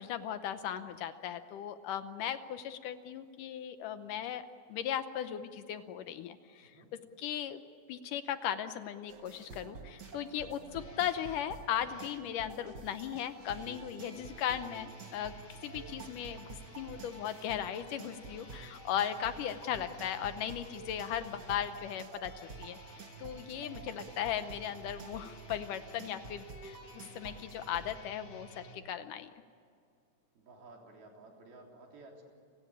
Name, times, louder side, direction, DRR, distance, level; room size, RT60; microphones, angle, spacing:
voice 1, 0.0-4.4 4.7-6.8 7.2-7.6 7.9-15.3 15.6-22.8 23.2-29.3, left 10 dB, 70° left, 10 dB, 2.2 m, -37 dB
sound 1, 9.1-28.0, right 4 dB, 55° right, 1.2 m, -50 dB
sound 2, 10.0-12.3 13.3-28.7, right 1 dB, 25° left, 1.8 m, -54 dB
voice 2, 14.0-14.5 26.0-26.2 30.4-32.2, right 2 dB, 85° right, 1 dB, 5.5 m, -55 dB
29.5 x 17.5 x 9.9 m, 2.3 s
omnidirectional pair, 4.2 m